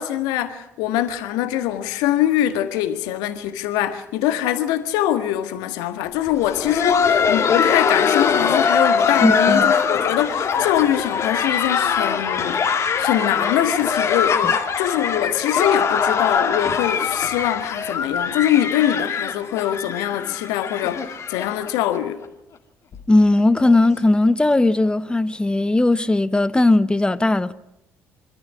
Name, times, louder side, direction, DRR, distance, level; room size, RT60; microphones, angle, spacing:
voice 1, 0.0-22.2, left 12 dB, 70° left, 1.6 m, -23 dB
Laughter, 6.3-22.0 22.2-22.3 22.9-23.0 23.6-23.8 24.9-25.0, left 6 dB, 45° left, 2.5 m, -22 dB
voice 2, 9.2-9.7 14.4-14.5 23.1-27.5, left 2 dB, 15° left, 1.2 m, -18 dB
25.5 x 13.5 x 9.7 m
figure-of-eight pair, 50°, 7 cm